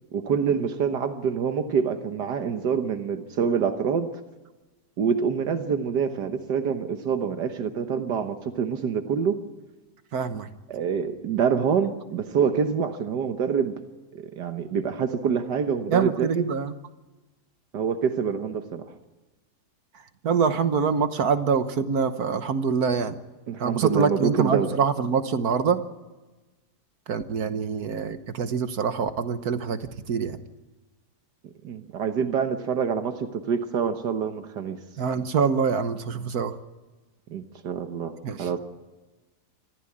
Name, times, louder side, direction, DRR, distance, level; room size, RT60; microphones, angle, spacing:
voice 1, 0.1-4.1 5.0-9.4 10.7-13.7 14.1-16.5 17.7-18.8 23.5-24.7 31.6-34.8 37.3-38.1 38.4-38.6, right 6 dB, 80° right, 7 dB, 1.8 m, -26 dB
voice 2, 10.1-10.5 15.9-16.7 20.2-23.2 23.6-25.8 27.1-29.8 30.1-30.4 35.0-36.5 38.2-38.4, right 6 dB, 65° right, 10 dB, 1.6 m, -25 dB
25.0 x 15.0 x 8.7 m, 1.2 s
omnidirectional pair, 1.8 m